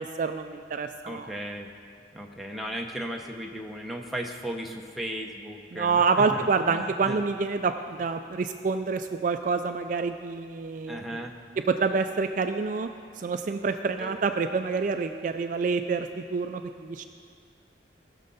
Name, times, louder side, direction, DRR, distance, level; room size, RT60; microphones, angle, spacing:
voice 1, 0.0-1.3 5.7-11.0 11.7-12.9 13.2-17.0, right 4 dB, 45° right, 8 dB, 0.3 m, -27 dB
voice 2, 1.0-1.7 2.1-7.2 10.9-11.3 14.0-14.2, equal, ahead, 0 dB, 0.8 m, -36 dB
19.0 x 6.6 x 4.1 m, 2.2 s
head